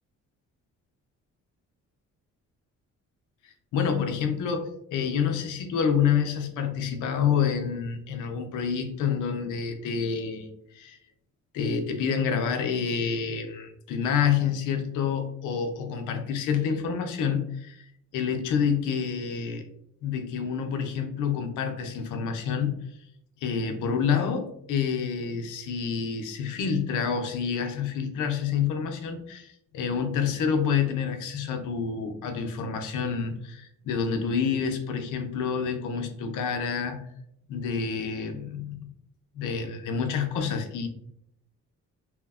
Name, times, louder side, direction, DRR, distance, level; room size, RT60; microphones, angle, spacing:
voice 1, 3.7-10.5 10.7-11.0 11.5-17.8 18.1-19.7 20.0-22.7 23.4-37.0 37.5-38.8 39.3-40.9, left 6 dB, 90° left, 5 dB, 0.5 m, -28 dB
2.9 x 2.0 x 2.3 m, 0.73 s
cardioid pair, 90°, 30 cm